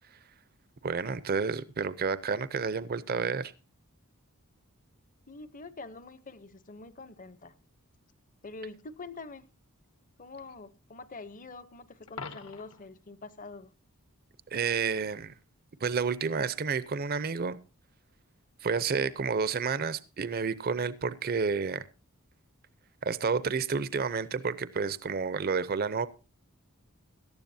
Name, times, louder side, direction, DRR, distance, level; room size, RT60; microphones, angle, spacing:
voice 1, 0.8-3.5 14.5-15.3 15.8-17.6 18.6-21.8 23.0-26.1, right 5 dB, 45° right, 15 dB, 0.6 m, -30 dB
voice 2, 5.3-7.5 8.4-9.5 10.2-13.7, left 3 dB, 40° left, 15 dB, 0.8 m, -45 dB
Coin (dropping), 12.1-12.9 19.0-19.2, left 4 dB, 70° left, 1.3 m, -43 dB
17.5 x 12.5 x 2.7 m, 0.32 s
head